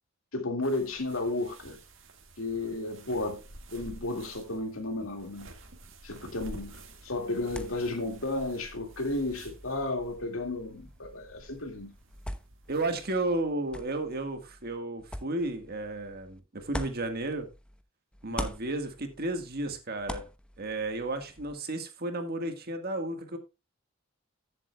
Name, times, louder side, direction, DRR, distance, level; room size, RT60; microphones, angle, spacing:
voice 1, 0.3-1.8 2.4-3.4 3.7-5.5 6.0-11.9 18.3-18.5, left 2 dB, 80° left, 2.2 m, -33 dB
sound 1, 0.6-13.0, right 2 dB, 70° right, 1.9 m, -51 dB
sound 2, 6.6-17.8 18.1-21.5, equal, 5° left, 0.8 m, -44 dB
voice 2, 12.7-17.5 18.2-20.2 20.6-23.4, right 2 dB, 50° right, 1.6 m, -33 dB
14.5 x 7.5 x 2.3 m
head